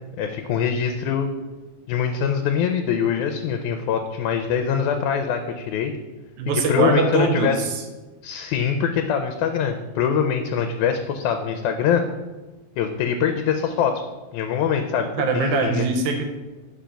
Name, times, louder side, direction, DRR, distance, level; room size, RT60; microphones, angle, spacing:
voice 1, 0.2-1.3 1.9-5.9 6.7-7.7 8.2-12.0 12.8-14.0 14.3-15.8, left 7 dB, 85° left, 5 dB, 2.0 m, -23 dB
voice 2, 6.4-7.8 15.2-16.2, right 4 dB, 80° right, 5 dB, 2.2 m, -22 dB
5.1 x 4.8 x 5.7 m, 1.2 s
omnidirectional pair, 3.4 m